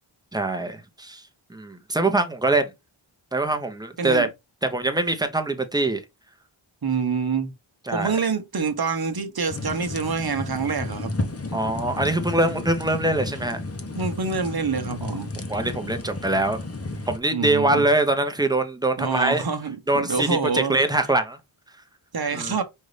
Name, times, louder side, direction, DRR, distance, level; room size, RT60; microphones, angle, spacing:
voice 1, 0.3-1.2 1.5-2.7 3.3-4.3 4.6-6.0 7.9-8.2 11.5-13.6 15.5-16.6 16.9-19.4 19.9-20.3 20.5-21.4 22.3-22.5, right 2 dB, 10° right, 0.8 m, -23 dB
voice 2, 4.0-4.3 6.8-7.5 7.9-11.1 14.0-15.3 17.3-17.9 19.0-20.8 22.1-22.6, right 5 dB, 50° right, 0.9 m, -26 dB
sound 1, 9.5-17.2, left 2 dB, 30° left, 0.8 m, -33 dB
5.4 x 2.6 x 3.2 m
wide cardioid pair, 65°, 49 cm